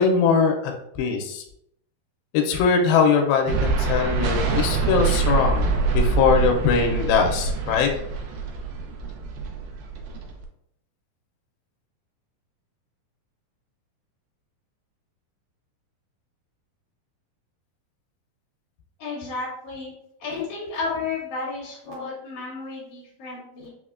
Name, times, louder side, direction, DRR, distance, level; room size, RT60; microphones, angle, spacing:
voice 1, 0.0-1.4 2.3-5.7 5.9-7.9, left 5 dB, 85° left, 3 dB, 2.3 m, -21 dB
sound 1, 3.5-10.5, right 4 dB, 80° right, 1.9 m, -25 dB
voice 2, 19.0-19.9 20.2-23.7, left 4 dB, 65° left, -5 dB, 2.2 m, -32 dB
5.6 x 2.1 x 2.4 m, 0.73 s
omnidirectional pair, 4.2 m